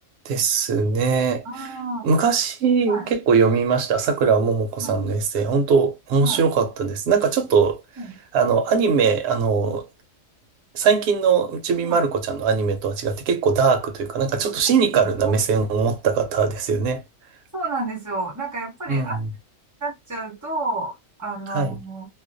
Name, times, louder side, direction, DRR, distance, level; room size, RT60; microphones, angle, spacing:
voice 1, 0.3-1.7 2.0-7.8 8.3-9.9 10.7-17.0 18.9-19.3 21.5-21.8, right 5 dB, 65° right, 0.8 m, -21 dB
voice 2, 1.4-2.1 2.9-3.1 4.8-5.1 6.2-6.5 8.0-8.1 11.8-12.0 15.3-15.4 17.5-19.2 19.8-20.9 21.2-22.1, right 2 dB, 25° right, 0.4 m, -30 dB
2.4 x 2.1 x 2.5 m
omnidirectional pair, 1.4 m